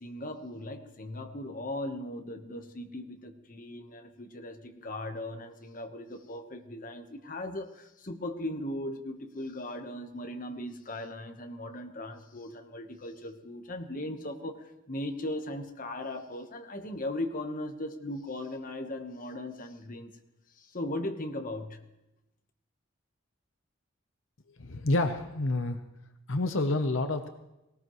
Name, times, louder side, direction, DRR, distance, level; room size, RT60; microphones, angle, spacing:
voice 1, 0.0-20.1 20.6-21.8, left 1 dB, 40° left, 6 dB, 1.2 m, -38 dB
voice 2, 24.6-25.8 26.3-27.3, left 2 dB, 70° left, 8 dB, 0.8 m, -28 dB
19.0 x 18.5 x 3.1 m, 0.93 s
head